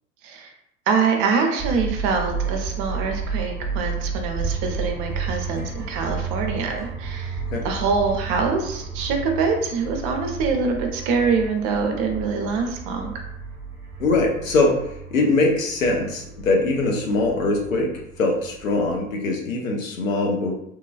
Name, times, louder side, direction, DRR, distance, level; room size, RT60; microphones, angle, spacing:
voice 1, 0.9-7.4 7.6-13.1, right 5 dB, 40° right, 3 dB, 0.5 m, -24 dB
sound 1, 1.6-19.1, right 5 dB, 5° right, 0.8 m, -32 dB
voice 2, 14.0-20.5, left 2 dB, 75° left, 1 dB, 0.7 m, -22 dB
3.1 x 2.2 x 2.2 m, 0.77 s
figure-of-eight pair, 75°, 41 cm